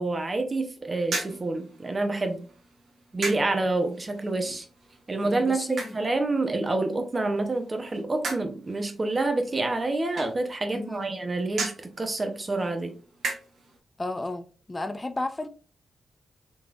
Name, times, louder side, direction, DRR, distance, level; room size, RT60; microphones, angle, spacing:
voice 1, 0.0-2.5 3.1-4.7 5.1-11.7 12.0-12.9, right 2 dB, 40° right, 0.9 m, -27 dB
sound 1, 1.0-13.8, right 3 dB, 70° right, 1.0 m, -39 dB
voice 2, 5.2-6.0 10.7-11.1 14.0-15.5, left 2 dB, 30° left, 0.4 m, -33 dB
3.8 x 3.2 x 2.5 m
supercardioid pair, 45°, 0 cm